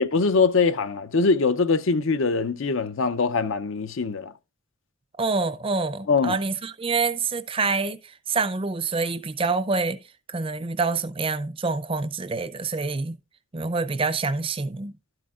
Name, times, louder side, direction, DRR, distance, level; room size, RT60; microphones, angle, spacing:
voice 1, 0.0-4.3 6.1-6.4, left 4 dB, 65° left, 0.6 m, -22 dB
voice 2, 5.2-10.0 10.3-13.2 13.5-14.9, right 4 dB, 25° right, 0.5 m, -26 dB
12.0 x 7.8 x 2.4 m
head